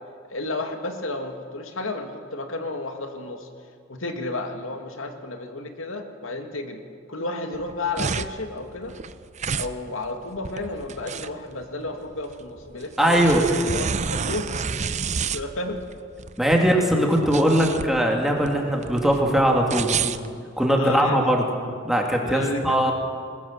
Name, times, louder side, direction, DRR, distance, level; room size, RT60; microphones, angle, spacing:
voice 1, 0.3-3.5 3.9-6.8 7.1-8.9 9.5-14.5 15.3-15.8 16.5-16.6 16.9-17.4 20.7-21.3 22.2-22.9, left 2 dB, 85° left, 5 dB, 2.3 m, -32 dB
sound 1, 7.5-21.1, right 6 dB, 35° right, 0.6 m, -30 dB
voice 2, 13.0-13.5 16.4-20.0 20.6-21.5 21.8-22.9, equal, ahead, 0 dB, 2.9 m, -20 dB
20.5 x 20.0 x 7.5 m, 2.1 s
head